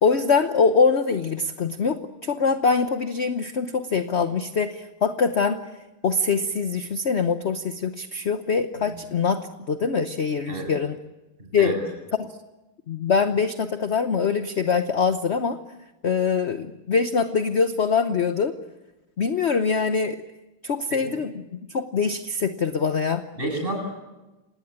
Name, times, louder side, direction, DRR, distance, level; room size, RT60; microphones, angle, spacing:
voice 1, 0.0-5.6 6.0-10.9 11.5-11.8 12.2-12.3 12.9-15.6 16.0-18.5 19.2-20.2 20.6-23.2, left 5 dB, 45° left, 9 dB, 0.9 m, -23 dB
voice 2, 11.4-11.8 20.9-21.0 23.3-23.8, right 1 dB, 25° right, 2 dB, 8.4 m, -30 dB
27.0 x 19.5 x 8.8 m, 1.0 s
omnidirectional pair, 2.2 m